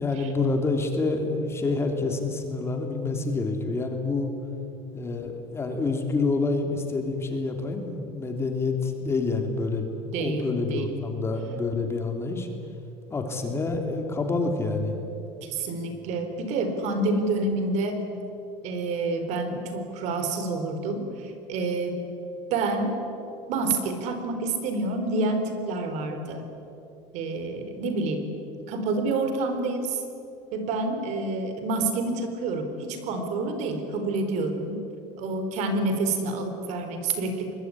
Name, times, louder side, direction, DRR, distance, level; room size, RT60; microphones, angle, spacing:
voice 1, 0.0-4.3 4.9-12.5 13.1-14.9, left 3 dB, 20° left, 4 dB, 3.3 m, -27 dB
voice 2, 10.1-11.0 15.4-18.0 18.6-22.0 22.5-23.0 23.5-26.4 27.1-28.3 28.7-30.0 30.5-34.8 35.2-37.5, right 2 dB, 60° right, 7 dB, 4.2 m, -28 dB
25.0 x 21.5 x 9.9 m, 2.7 s
cardioid pair, 145°, 13 cm